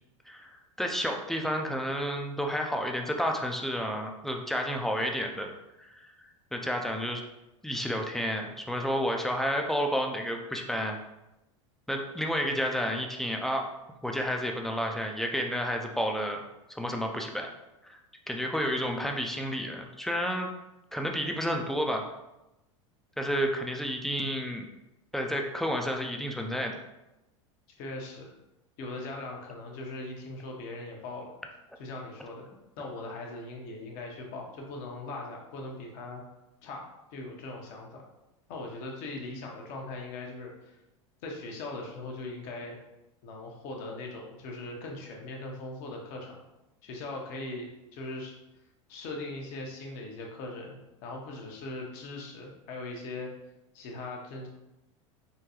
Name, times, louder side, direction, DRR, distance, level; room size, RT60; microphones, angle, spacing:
voice 1, 0.3-5.5 5.8-6.1 6.5-7.2 7.6-11.0 11.9-13.6 14.0-16.4 16.7-17.5 17.8-18.0 18.3-20.5 20.9-22.0 23.2-24.7 25.1-26.8, equal, ahead, 2 dB, 0.4 m, -31 dB
voice 2, 27.8-28.3 28.8-31.3 31.8-32.5 32.8-36.2 36.6-38.0 38.5-40.8 41.2-42.8 43.2-46.4 46.8-47.7 47.9-48.3 48.9-53.3 53.7-54.5, left 2 dB, 55° left, 0 dB, 0.9 m, -40 dB
3.8 x 2.2 x 2.9 m, 0.95 s
hypercardioid pair, 95°, 16 cm